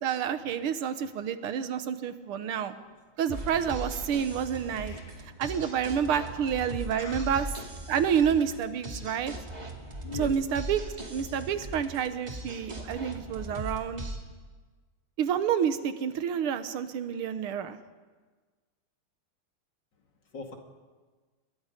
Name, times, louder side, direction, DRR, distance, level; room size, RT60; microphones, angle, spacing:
voice 1, 0.0-2.8 3.2-5.0 5.4-7.5 7.9-9.3 10.1-10.8 11.1-14.0 15.2-17.8, right 8 dB, 85° right, 11 dB, 2.0 m, -29 dB
voice 2, 2.3-2.9 4.8-5.2 6.9-7.4 10.0-10.4 20.3-20.6, left 4 dB, 55° left, 2 dB, 2.8 m, -42 dB
sound 1, 3.3-14.2, right 1 dB, 20° right, 2.3 m, -39 dB
27.0 x 21.5 x 5.2 m, 1.4 s
omnidirectional pair, 2.3 m